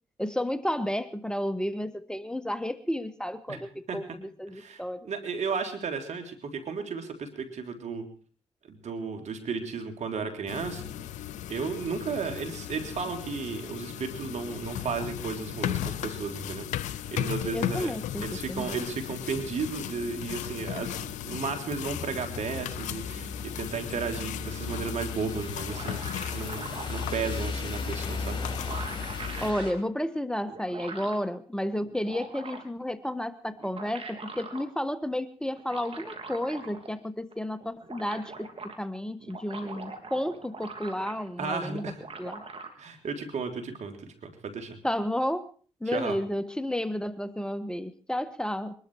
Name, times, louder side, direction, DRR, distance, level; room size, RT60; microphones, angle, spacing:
voice 1, 0.2-5.1 17.5-18.8 29.4-38.5 38.8-41.8 42.2-42.4 44.8-45.5 45.8-48.7, left 1 dB, 5° left, 13 dB, 1.5 m, -32 dB
voice 2, 4.5-8.1 8.7-10.8 11.5-17.9 18.2-28.4 41.4-42.0 42.8-44.8 45.9-46.2, right 5 dB, 70° right, 6 dB, 3.2 m, -34 dB
sound 1, 10.5-29.5, left 11 dB, 90° left, 0.8 m, -36 dB
sound 2, 21.9-29.7, left 4 dB, 40° left, 5.3 m, -37 dB
slime monster noises, 25.4-27.1 28.1-28.2 28.4-29.8 30.5-31.3 31.8-32.8 33.5-34.7 35.6-37.0 37.3-37.4 37.6-38.8 39.2-41.4 41.7-42.7, right 3 dB, 55° right, 3.6 m, -42 dB
22.5 x 12.5 x 4.8 m, 0.41 s
supercardioid pair, 45°, 12 cm